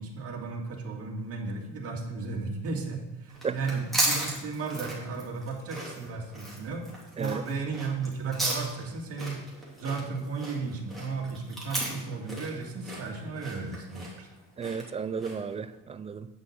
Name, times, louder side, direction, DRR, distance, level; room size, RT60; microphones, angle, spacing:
voice 1, 0.0-6.9 7.1-9.4 9.8-14.3, right 4 dB, 45° right, 0 dB, 2.1 m, -34 dB
sound 1, 3.3-15.5, right 1 dB, ahead, 3.0 m, -35 dB
voice 2, 14.6-16.3, right 6 dB, 20° right, 12 dB, 0.3 m, -33 dB
9.4 x 6.3 x 6.5 m, 0.99 s
cardioid pair, 150°, 32 cm